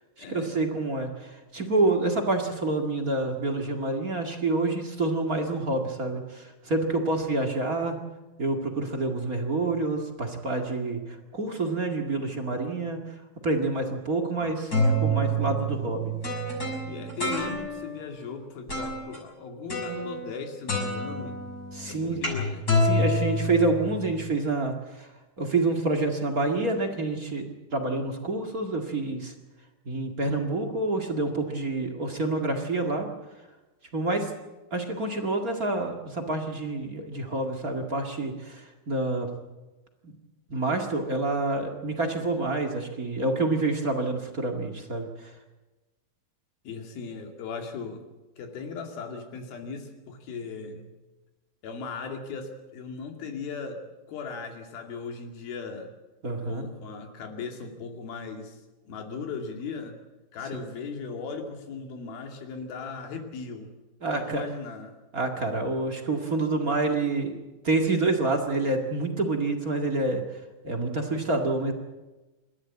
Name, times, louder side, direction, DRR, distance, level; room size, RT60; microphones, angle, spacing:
voice 1, 0.2-7.9 8.4-13.0 13.4-16.1 21.7-22.2 22.8-25.1 25.4-29.3 29.8-33.1 33.9-34.3 34.7-39.3 40.0-40.2 40.5-45.3 56.2-56.6 64.0-64.4 65.1-70.2 70.6-71.7, right 2 dB, 30° right, 2 dB, 1.7 m, -28 dB
sound 1, 14.4-18.0 18.7-19.2 19.7-20.4 20.7-24.2, equal, 25° left, 6.5 m, -28 dB
voice 2, 16.9-21.4 21.9-22.6 46.6-48.0 48.4-50.9 51.6-53.8 54.1-55.9 56.4-60.0 60.3-63.7 64.1-64.9, left 5 dB, 70° left, 4 dB, 4.3 m, -37 dB
28.0 x 13.5 x 8.5 m, 1.1 s
omnidirectional pair, 4.4 m